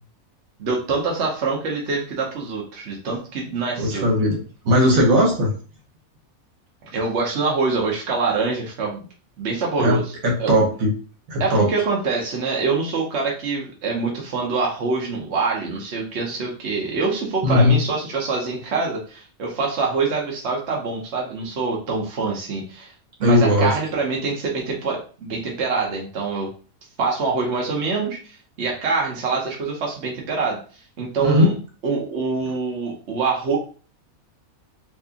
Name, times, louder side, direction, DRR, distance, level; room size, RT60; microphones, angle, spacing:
voice 1, 0.6-4.1 6.9-9.0 9.4-10.1 10.4-10.6 11.4-22.9 23.2-26.5 27.0-30.6 31.0-31.5 31.8-33.6, right 4 dB, 55° right, -2 dB, 1.1 m, -25 dB
voice 2, 3.8-4.4 4.6-5.5 9.8-10.0 10.2-10.9 11.3-11.7 17.4-17.8 23.2-23.7 31.2-31.5, left 1 dB, 70° right, 0 dB, 1.6 m, -17 dB
4.5 x 2.8 x 2.8 m, 0.38 s
omnidirectional pair, 1.5 m